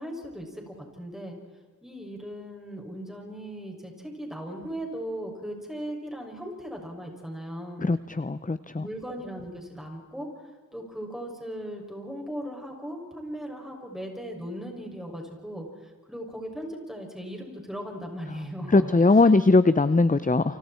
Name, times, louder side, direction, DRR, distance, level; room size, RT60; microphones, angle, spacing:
voice 1, 0.0-1.4 1.8-7.9 8.7-10.3 10.7-18.9, equal, ahead, 1 dB, 6.7 m, -38 dB
voice 2, 7.8-8.9 18.7-20.6, left 3 dB, 25° left, 13 dB, 0.7 m, -20 dB
30.0 x 25.5 x 4.5 m, 1.4 s
wide cardioid pair, 75°, 32 cm